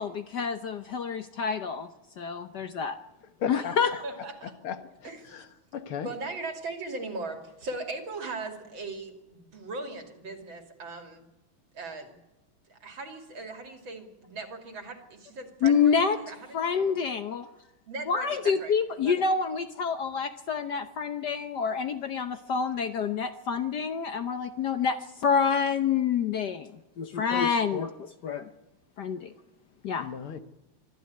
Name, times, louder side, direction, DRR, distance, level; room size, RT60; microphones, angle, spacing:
voice 1, 0.0-1.9 2.2-3.0 3.5-3.9 15.6-16.2 16.5-17.5 18.1-28.5 29.0-29.3 29.8-30.1, left 6 dB, 60° left, 9 dB, 1.3 m, -27 dB
voice 2, 3.4-3.8 4.6-6.1 30.0-30.4, left 7 dB, 75° left, 8 dB, 2.2 m, -36 dB
voice 3, 4.0-4.5 5.0-5.5 6.0-11.2 11.7-12.2 12.7-17.0 17.9-19.2, right 3 dB, 60° right, 4 dB, 3.6 m, -39 dB
24.5 x 13.5 x 9.5 m, 1.0 s
omnidirectional pair, 2.4 m